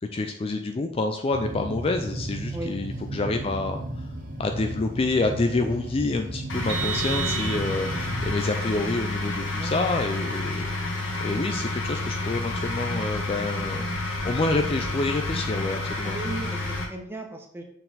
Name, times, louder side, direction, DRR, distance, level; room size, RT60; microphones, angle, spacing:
voice 1, 0.1-3.8 4.4-10.7 11.2-13.9 14.2-16.1, left 3 dB, 30° left, 6 dB, 0.3 m, -27 dB
sound 1, 1.3-8.3, right 1 dB, 45° right, 1.0 m, -34 dB
sound 2, 6.5-16.8, left 2 dB, 75° left, 1.2 m, -30 dB
Vehicle horn car horn honking, 6.7-8.1, right 8 dB, 75° right, 1.2 m, -32 dB
voice 2, 9.4-10.1 16.0-16.6 16.9-17.6, right 1 dB, 10° right, 2 dB, 0.9 m, -37 dB
6.6 x 4.0 x 4.1 m, 0.68 s
head